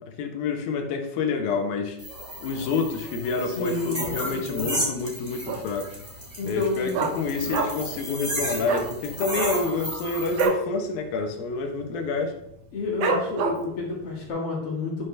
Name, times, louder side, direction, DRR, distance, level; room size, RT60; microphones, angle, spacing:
voice 1, 0.2-2.0 2.4-6.0 6.4-12.4, left 4 dB, 80° left, 4 dB, 2.9 m, -28 dB
sound 1, 2.0-10.4, right 1 dB, 15° right, 3.0 m, -34 dB
voice 2, 3.5-4.7 6.4-7.2 12.7-15.1, left 3 dB, 45° left, -3 dB, 2.7 m, -30 dB
Dog, 5.5-5.9 6.2-6.3 6.5-8.0 8.2-8.4 8.6-8.9 9.3-10.7 11.0-11.2 11.5-11.9 12.3-12.4 13.0-13.8 14.3-14.4, right 4 dB, 75° right, 1.4 m, -27 dB
11.0 x 7.3 x 3.3 m, 0.80 s
omnidirectional pair, 4.2 m